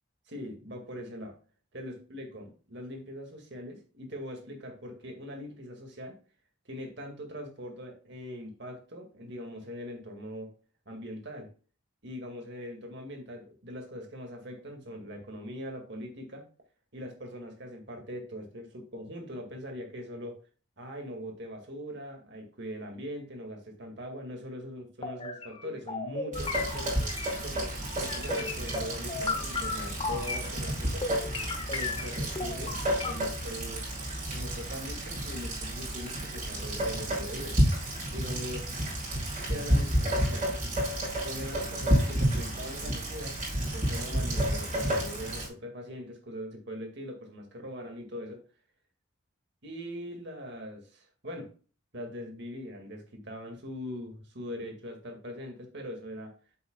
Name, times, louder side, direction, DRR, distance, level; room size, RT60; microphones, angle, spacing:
voice 1, 0.3-1.4 1.7-6.2 6.7-10.5 10.9-11.5 12.0-16.5 16.9-20.4 20.8-27.0 27.4-31.1 31.7-34.0 34.3-37.6 38.1-38.7 39.5-40.5 41.2-48.4 49.6-51.5 51.9-56.3, equal, 55° right, 3 dB, 2.0 m, -41 dB
sound 1, 25.0-27.4 27.7-30.5 31.0-33.1, left 4 dB, 25° left, 0.8 m, -36 dB
Rain, 26.3-45.5, equal, 35° right, 4.3 m, -31 dB
7.9 x 7.8 x 2.3 m, 0.36 s
head